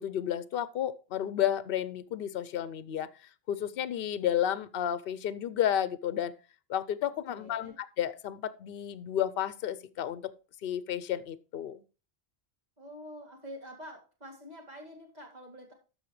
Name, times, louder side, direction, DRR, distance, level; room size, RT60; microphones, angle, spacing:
voice 1, 0.0-3.1 3.5-6.3 6.7-10.3 10.6-11.8, left 10 dB, 65° left, 0.8 m, -32 dB
voice 2, 7.3-7.7 12.8-15.7, equal, 40° right, 2.3 m, -47 dB
13.0 x 5.6 x 3.2 m
omnidirectional pair, 1.1 m